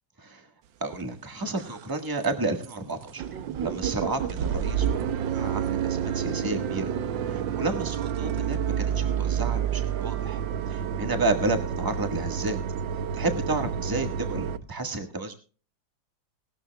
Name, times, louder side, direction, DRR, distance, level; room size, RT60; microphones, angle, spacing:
voice 1, 0.2-0.5 0.8-3.3 3.6-6.9 7.2-12.6 12.9-15.3, right 2 dB, 10° right, 5 dB, 1.4 m, -31 dB
sound 1, 0.9-1.0 1.5-1.9 2.2-2.3 2.6-2.8 3.0-14.6, right 8 dB, 75° right, 1.5 m, -29 dB
19.0 x 13.0 x 2.3 m, 0.37 s
omnidirectional pair, 2.1 m